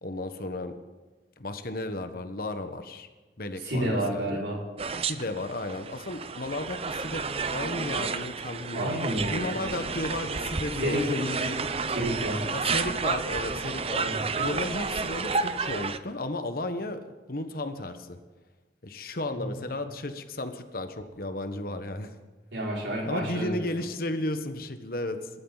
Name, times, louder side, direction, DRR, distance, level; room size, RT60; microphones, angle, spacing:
voice 1, 0.0-0.8 1.4-3.1 3.4-4.4 5.1-9.0 9.3-11.9 12.5-14.0 14.4-18.2 18.8-22.1 23.1-25.3, left 2 dB, 55° left, 8 dB, 1.3 m, -34 dB
voice 2, 3.6-4.6 8.7-9.5 10.8-11.1 11.9-12.5 14.0-14.2 19.3-19.6 22.5-23.7, equal, 85° right, -3 dB, 5.6 m, -30 dB
sound 1, 4.8-16.0, right 4 dB, 35° right, 0.6 m, -31 dB
26.5 x 13.5 x 4.1 m, 1.3 s
head